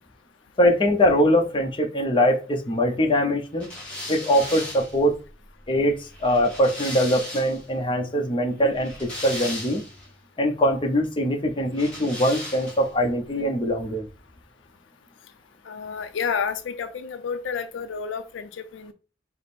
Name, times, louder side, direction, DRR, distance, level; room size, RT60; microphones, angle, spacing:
voice 1, 0.6-3.7 4.1-5.1 5.7-9.8 10.4-14.1, equal, 25° left, 2 dB, 0.7 m, -22 dB
sound 1, 3.6-7.7 8.6-10.1 11.7-13.0, left 1 dB, 5° left, 2.2 m, -37 dB
voice 2, 15.6-18.9, left 6 dB, 80° left, 10 dB, 0.4 m, -30 dB
5.0 x 2.0 x 4.2 m, 0.33 s
head